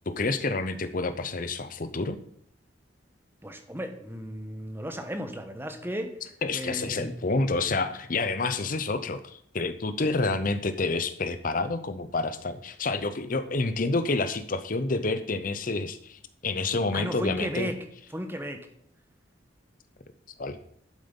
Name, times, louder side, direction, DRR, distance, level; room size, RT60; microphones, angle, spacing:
voice 1, 0.1-2.2 6.4-17.7 20.4-20.6, left 3 dB, 45° left, 11 dB, 0.7 m, -28 dB
voice 2, 3.4-6.1 6.5-7.1 16.9-17.8 18.1-18.6, equal, 10° right, 7 dB, 1.2 m, -34 dB
11.5 x 7.8 x 5.3 m, 0.68 s
head